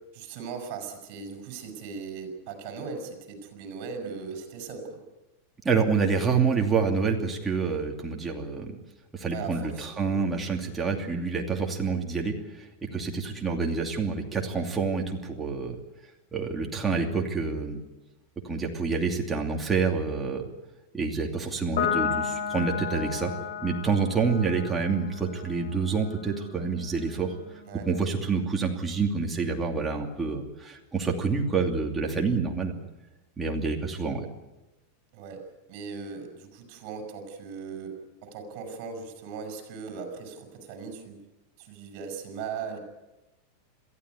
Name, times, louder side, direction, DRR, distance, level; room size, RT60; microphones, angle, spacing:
voice 1, 0.1-5.0 9.3-10.2 27.7-27.9 35.1-35.4 35.7-37.9 38.2-41.2 41.6-42.8, right 5 dB, 40° right, 5 dB, 6.9 m, -38 dB
voice 2, 5.6-8.8 9.1-15.8 16.3-17.8 18.4-20.5 20.9-23.3 23.6-27.3 27.9-32.7 33.4-34.3, right 5 dB, 10° right, 0 dB, 2.6 m, -27 dB
Piano, 21.8-28.5, left 7 dB, 75° left, 6.0 m, -34 dB
22.5 x 15.5 x 9.7 m, 1.0 s
supercardioid pair, 165°, 0 cm